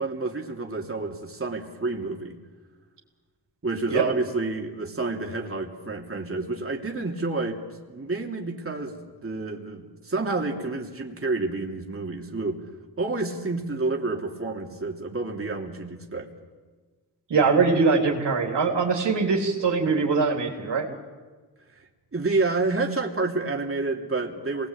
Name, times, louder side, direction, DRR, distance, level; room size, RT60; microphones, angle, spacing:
voice 1, 0.0-2.4 3.6-7.6 7.9-12.6 13.0-16.3 21.7-21.8 22.1-24.7, right 3 dB, 35° right, 0 dB, 3.0 m, -29 dB
voice 2, 17.3-20.9, right 4 dB, 85° right, 0 dB, 3.9 m, -22 dB
26.5 x 20.5 x 8.8 m, 1.4 s
cardioid pair, 70°, 41 cm